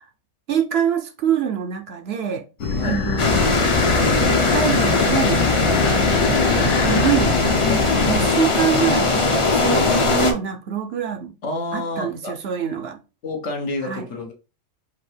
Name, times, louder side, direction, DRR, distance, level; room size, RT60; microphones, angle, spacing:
voice 1, 0.5-2.4 2.8-3.9 4.2-5.4 5.9-7.4 8.1-11.3 11.7-13.0 13.8-14.1, right 8 dB, 60° right, 0.8 m, -25 dB
sound 1, 2.6-10.2, left 4 dB, 90° left, 1.2 m, -25 dB
sound 2, 3.2-10.3, left 3 dB, 30° left, 0.6 m, -19 dB
voice 2, 11.4-12.3 13.2-14.3, left 2 dB, 70° left, 1.3 m, -28 dB
4.9 x 2.8 x 3.2 m
omnidirectional pair, 1.3 m